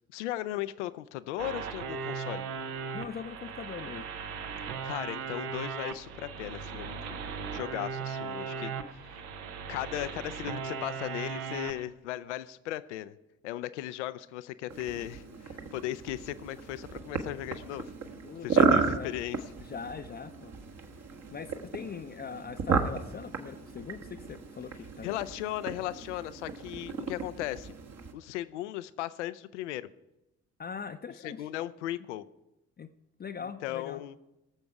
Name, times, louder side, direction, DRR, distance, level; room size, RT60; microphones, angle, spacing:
voice 1, 0.1-2.4 4.8-9.3 9.7-13.2 13.4-17.9 18.4-19.4 25.0-27.7 28.1-29.9 31.2-32.2 33.4-34.1, left 14 dB, 80° left, 16 dB, 0.5 m, -37 dB
sound 1, 1.4-11.8, right 6 dB, 75° right, 0.8 m, -38 dB
voice 2, 2.9-4.1 8.6-8.7 18.2-19.1 19.6-20.5 21.3-25.2 30.6-31.5 32.8-32.9 33.2-34.0, left 6 dB, 30° left, 6 dB, 0.6 m, -41 dB
sound 2, 14.7-28.1, right 5 dB, 50° right, 1.3 m, -33 dB
18.0 x 7.0 x 4.7 m, 0.94 s
figure-of-eight pair, 45°, 35 cm